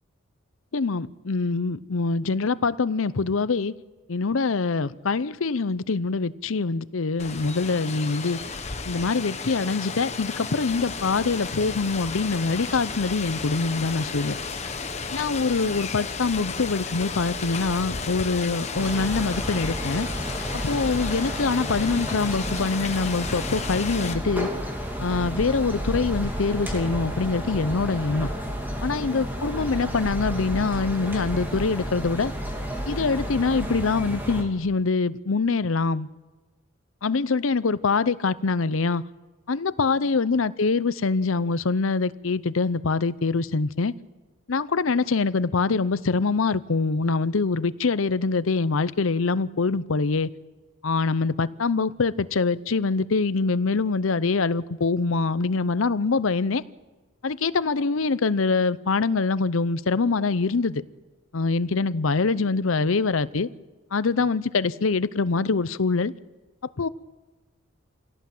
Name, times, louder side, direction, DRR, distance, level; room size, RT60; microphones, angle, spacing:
voice 1, 0.7-3.7 4.1-8.4 8.9-14.4 15.1-20.1 20.6-24.5 25.0-28.3 28.8-32.3 32.9-36.1 37.0-39.0 39.5-43.9 44.5-50.3 50.8-56.6 57.2-60.8 61.3-63.5 63.9-66.1 66.8-66.9, left 4 dB, 80° left, 0.7 m, -24 dB
Rain, 7.2-24.1, left 5 dB, 35° left, 1.2 m, -33 dB
sound 1, 10.7-28.3, equal, 10° left, 3.0 m, -43 dB
sound 2, 18.7-34.4, equal, 10° right, 2.9 m, -31 dB
25.5 x 17.0 x 7.7 m
head